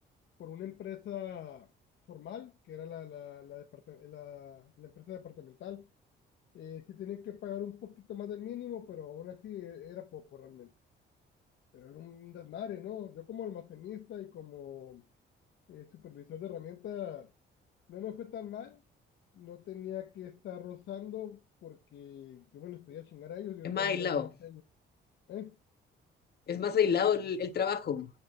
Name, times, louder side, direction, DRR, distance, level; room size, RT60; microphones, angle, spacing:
voice 1, 0.4-1.7 2.1-5.9 6.5-10.7 11.7-15.0 15.7-17.3 17.9-18.8 19.3-24.6 25.3-25.6 27.0-27.1, left 10 dB, 70° left, 1.0 m, -43 dB
voice 2, 23.6-24.3 26.5-28.1, left 7 dB, 55° left, 1.5 m, -29 dB
9.9 x 6.4 x 4.3 m
cardioid pair, 90°, 20 cm